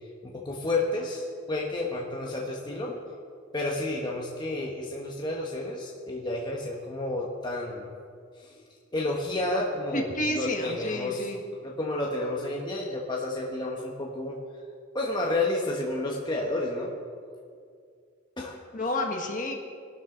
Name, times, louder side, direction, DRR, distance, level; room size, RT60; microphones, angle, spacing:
voice 1, 0.2-3.0 3.5-7.9 8.4-8.6 8.9-11.3 11.6-14.4 14.9-16.9 18.4-18.6, left 2 dB, 20° left, -2 dB, 1.3 m, -31 dB
voice 2, 9.9-11.4 18.7-19.6, left 1 dB, 40° left, 2 dB, 1.7 m, -30 dB
21.5 x 12.0 x 3.9 m, 2.2 s
head